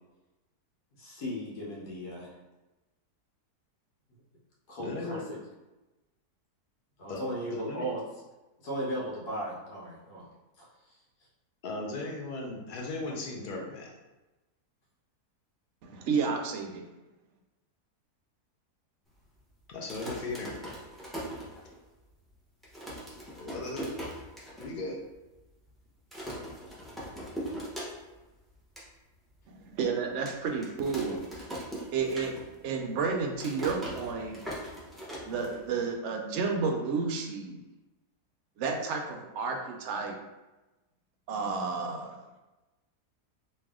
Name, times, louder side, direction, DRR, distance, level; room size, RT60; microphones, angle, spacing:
voice 1, 1.0-2.3 4.7-5.2 7.0-8.0 8.6-10.3, right 1 dB, 80° left, -5 dB, 1.4 m, -36 dB
voice 2, 4.8-5.2 7.1-7.2 7.5-7.9 11.6-13.9 19.7-20.6 23.4-23.9 24.6-25.0, left 2 dB, 60° left, -1 dB, 0.5 m, -37 dB
voice 3, 15.8-16.9 29.5-31.5 31.9-32.3 32.6-34.4 35.2-37.6 38.6-40.2 41.3-42.2, right 5 dB, 70° right, 2 dB, 0.7 m, -31 dB
sound 1, 19.7-22.0 22.3-22.4 22.6-24.7 25.0-25.1 25.3-25.7 26.1-28.3 28.5-28.9 29.4-29.5 30.3-32.7 33.0-35.9, right 1 dB, ahead, 0.4 m, -40 dB
3.2 x 2.6 x 3.6 m, 1.1 s
omnidirectional pair, 1.7 m